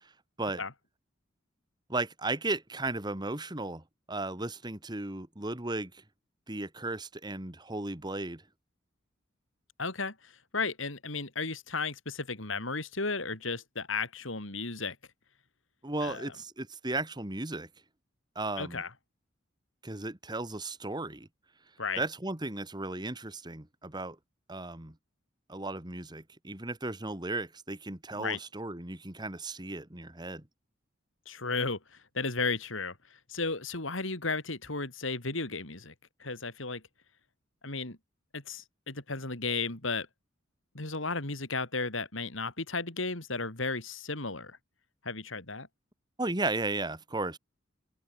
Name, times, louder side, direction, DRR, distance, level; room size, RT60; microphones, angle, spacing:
voice 1, 1.9-6.0 6.5-8.4 15.8-17.7 18.4-18.8 19.8-21.3 22.0-24.2 24.5-24.9 25.5-30.4 46.2-47.4, right 2 dB, 20° right, 1.9 m, -35 dB
voice 2, 9.8-15.0 16.0-16.3 18.6-18.9 21.8-22.0 28.1-28.4 31.3-31.8 32.1-33.0 33.3-35.9 36.2-36.8 37.6-38.0 38.3-40.1 40.7-44.6 45.0-45.7, left 4 dB, 70° left, 3.8 m, -34 dB
open air
head